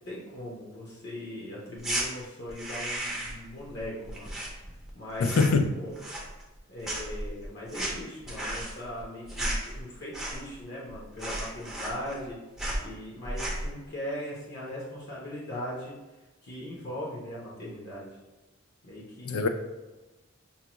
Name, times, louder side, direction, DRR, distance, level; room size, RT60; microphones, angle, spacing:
voice 1, 0.1-4.3 4.9-5.4 5.7-5.9 6.7-12.4 12.8-15.9 16.5-18.1 18.9-19.5, left 1 dB, 50° left, -5 dB, 0.9 m, -39 dB
sound 1, 1.8-2.1 2.5-3.5 3.7-4.9 5.2-5.7 6.0-6.6 6.8-10.6 10.9-11.0 11.2-12.3 12.6-12.8 13.2-13.7, right 1 dB, ahead, 0.6 m, -34 dB
voice 2, 5.2-5.7 19.2-19.5, left 4 dB, 90° left, 7 dB, 0.4 m, -23 dB
5.6 x 2.3 x 2.9 m, 1.1 s
head